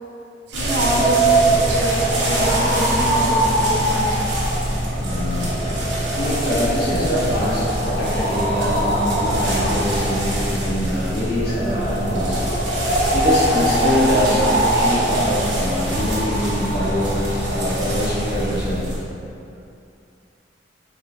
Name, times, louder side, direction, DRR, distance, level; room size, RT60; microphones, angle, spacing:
voice 1, 0.5-4.2, equal, 65° right, -1 dB, 0.6 m, -26 dB
sound 1, 0.5-19.0, right 1 dB, 85° right, 1.2 m, -21 dB
voice 2, 5.0-5.5 6.1-12.4 12.8-18.9, equal, 55° left, -8 dB, 1.2 m, -24 dB
4.6 x 3.1 x 3.5 m, 2.6 s
head